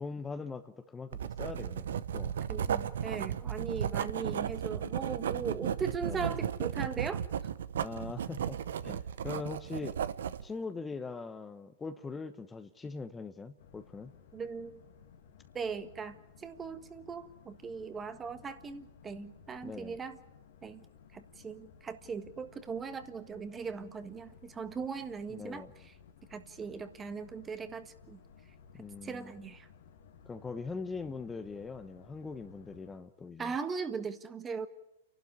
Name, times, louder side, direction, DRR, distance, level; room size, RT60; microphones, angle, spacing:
voice 1, 0.0-2.4 6.1-6.3 7.8-10.0 10.4-14.1 19.6-20.0 25.3-25.7 28.7-29.3 30.3-33.5, left 4 dB, 15° left, 8 dB, 1.0 m, -41 dB
Writing, 1.1-10.5, right 9 dB, 75° right, 0.8 m, -35 dB
voice 2, 2.5-7.2 14.3-14.8 15.5-20.2 20.6-20.8 21.1-25.9 26.3-28.2 29.0-29.7 33.4-34.7, right 5 dB, 20° right, 10 dB, 1.5 m, -39 dB
Boat Water vehicle, 13.6-33.0, left 7 dB, 65° left, 2.0 m, -58 dB
29.5 x 12.0 x 9.7 m, 0.93 s
hypercardioid pair, 115°, 0 cm